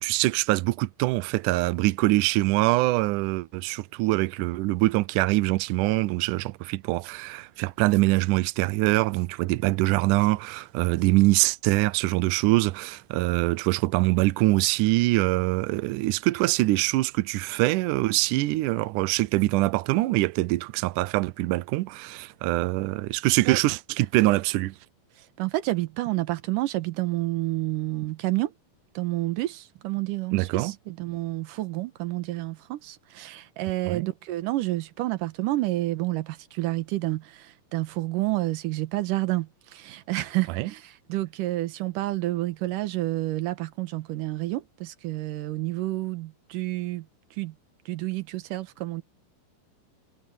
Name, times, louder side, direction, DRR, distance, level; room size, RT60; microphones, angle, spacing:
voice 1, 0.0-24.8 30.3-30.7 33.9-34.1 40.6-40.7, right 19 dB, 85° right, 1.8 m, -24 dB
voice 2, 25.2-28.5 28.9-47.6 47.9-49.0, right 17 dB, 70° right, 2.4 m, -29 dB
omnidirectional pair, 4.2 m